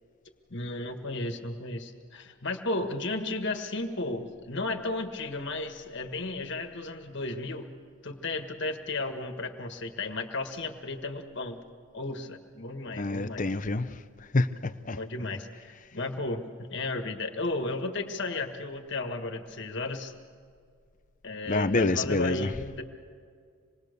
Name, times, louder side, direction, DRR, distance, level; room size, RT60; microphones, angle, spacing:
voice 1, 0.5-7.7 8.0-11.6 11.9-13.5 14.9-20.1 21.2-22.8, left 2 dB, 55° left, 1.7 m, -34 dB
voice 2, 13.0-14.0 14.3-15.0 15.3-15.4 21.5-22.5, left 2 dB, 35° left, 0.7 m, -27 dB
26.0 x 21.0 x 6.8 m
head